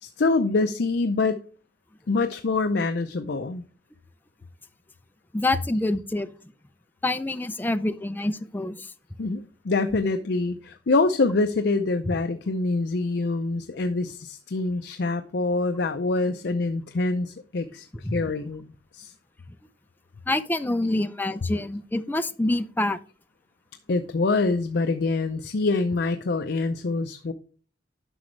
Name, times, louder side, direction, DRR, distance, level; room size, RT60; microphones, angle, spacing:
voice 1, 0.0-1.4 2.1-3.6 9.2-19.1 23.9-27.3, left 3 dB, 65° left, 0.5 m, -25 dB
voice 2, 5.3-6.3 7.0-8.9 12.1-12.2 18.0-18.2 20.3-23.0, left 2 dB, 10° left, 0.5 m, -26 dB
9.9 x 6.2 x 3.2 m
head